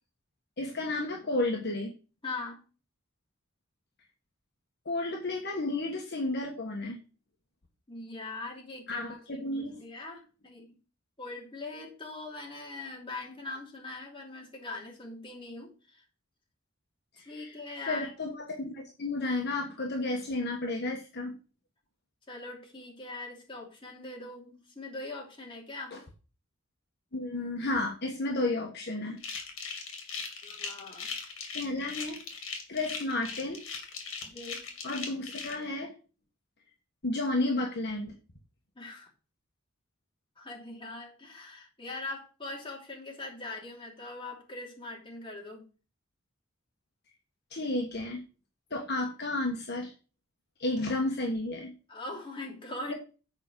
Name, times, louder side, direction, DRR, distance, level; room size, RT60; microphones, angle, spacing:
voice 1, 0.6-1.9 4.8-7.0 8.9-9.8 17.2-17.6 17.9-21.3 25.9-26.0 27.1-29.2 31.5-32.2 32.7-33.6 34.8-35.9 37.0-38.1 47.5-48.2 48.7-49.9 50.6-51.7 52.9-53.0, left 2 dB, 55° left, 1 dB, 1.4 m, -32 dB
voice 2, 2.2-2.6 7.9-10.8 11.2-16.0 17.2-18.1 22.3-26.0 30.4-31.1 34.2-34.7 38.8-39.1 40.4-45.6 51.9-52.9, left 2 dB, 25° left, -1 dB, 3.1 m, -41 dB
sound 1, 29.2-35.5, left 5 dB, 75° left, 2.4 m, -39 dB
8.1 x 5.2 x 6.2 m, 0.35 s
head